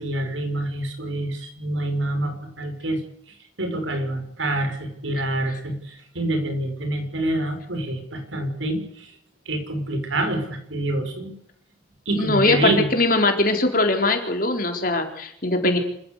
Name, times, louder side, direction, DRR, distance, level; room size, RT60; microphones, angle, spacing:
voice 1, 0.0-3.0 3.6-9.1 9.5-11.3 12.1-12.9, right 1 dB, 85° right, 7 dB, 5.9 m, -26 dB
voice 2, 12.1-12.6 12.9-15.8, left 2 dB, 45° left, 4 dB, 4.1 m, -21 dB
26.5 x 14.5 x 8.3 m, 0.72 s
head